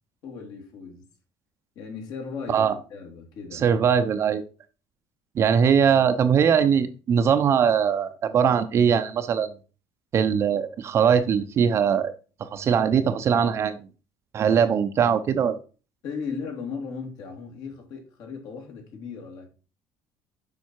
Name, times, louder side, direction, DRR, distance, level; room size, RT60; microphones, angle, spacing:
voice 1, 0.2-1.1 1.7-3.9 16.0-19.5, left 5 dB, 60° left, 2.8 m, -37 dB
voice 2, 3.5-4.4 5.3-9.5 10.1-12.1 12.4-13.9 14.3-15.6, right 7 dB, 35° right, 0.7 m, -21 dB
7.3 x 5.5 x 4.6 m
cardioid pair, 150°, 7 cm